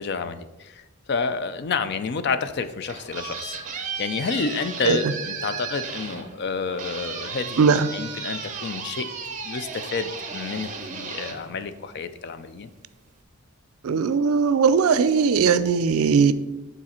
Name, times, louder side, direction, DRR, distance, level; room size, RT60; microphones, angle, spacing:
voice 1, 0.0-9.1 9.4-12.7, left 5 dB, 50° left, 11 dB, 0.4 m, -30 dB
sound 1, 2.6-12.3, right 5 dB, 35° right, 0.7 m, -35 dB
voice 2, 7.6-7.9 13.8-16.3, right 5 dB, 75° right, 14 dB, 0.4 m, -19 dB
8.8 x 4.0 x 4.3 m, 1.1 s
head